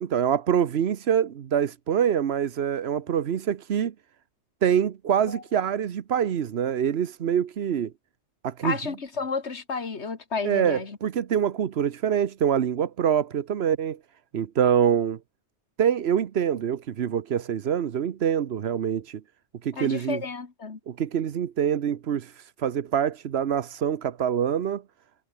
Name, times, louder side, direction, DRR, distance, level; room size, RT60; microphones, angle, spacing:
voice 1, 0.0-3.9 4.6-7.9 8.4-8.8 10.4-14.0 14.3-15.2 15.8-19.2 19.6-20.2 20.9-24.8, right 8 dB, 70° right, 1.1 m, -25 dB
voice 2, 8.6-11.0 19.7-20.8, left 4 dB, 80° left, 2.2 m, -32 dB
omnidirectional pair, 1.1 m